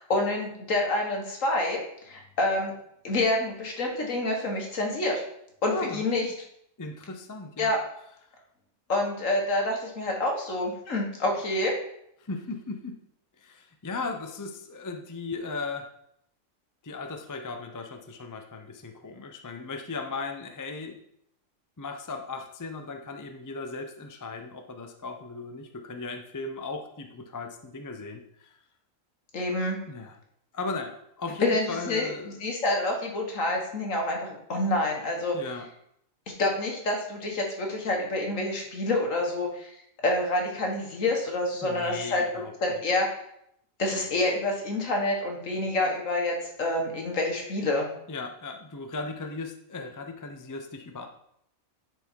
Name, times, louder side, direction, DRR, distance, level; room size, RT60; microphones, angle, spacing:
voice 1, 0.0-1.8 2.1-2.7 3.0-5.2 5.6-6.2 7.6-7.8 8.9-11.8 29.3-29.8 31.4-32.1 32.4-35.4 36.4-39.8 40.0-42.2 42.6-43.1 43.8-47.9, left 2 dB, 70° left, 1 dB, 1.9 m, -27 dB
voice 2, 5.6-6.3 6.8-7.7 12.2-13.0 13.4-15.9 16.8-21.0 21.8-28.6 29.9-30.2 30.5-32.3 35.3-35.7 41.6-42.8 48.1-51.1, left 3 dB, 20° left, 5 dB, 0.5 m, -37 dB
10.0 x 4.6 x 4.6 m, 0.74 s
omnidirectional pair, 1.4 m